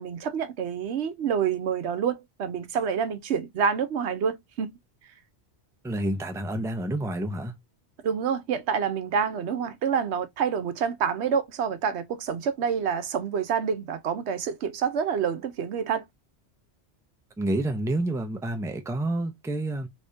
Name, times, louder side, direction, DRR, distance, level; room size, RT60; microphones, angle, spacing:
voice 1, 0.0-4.7 8.0-16.0, right 7 dB, 80° right, 1.0 m, -27 dB
voice 2, 5.8-7.5 17.4-19.9, right 1 dB, 5° right, 0.5 m, -29 dB
3.5 x 3.2 x 2.6 m
omnidirectional pair, 1.1 m